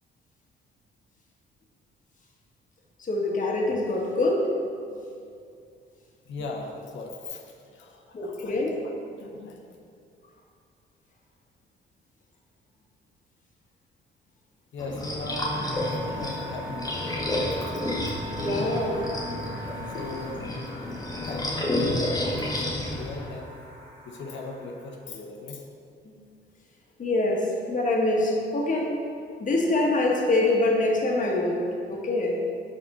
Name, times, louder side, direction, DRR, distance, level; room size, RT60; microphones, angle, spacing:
voice 1, 3.0-4.5 8.1-8.8 18.4-19.0 26.0-26.1 27.0-28.9 29.4-31.6 31.9-32.3, left 2 dB, 40° left, -1 dB, 1.2 m, -25 dB
voice 2, 6.2-9.7 14.7-17.6 19.9-20.6 21.2-23.6 24.0-25.6, left 2 dB, 70° left, 1 dB, 0.8 m, -39 dB
sound 1, 14.8-23.3, left 1 dB, 20° left, 0.9 m, -30 dB
sound 2, 15.3-25.0, equal, 85° right, 1.3 m, -41 dB
5.0 x 4.3 x 5.4 m, 2.4 s
cardioid pair, 90°, 20 cm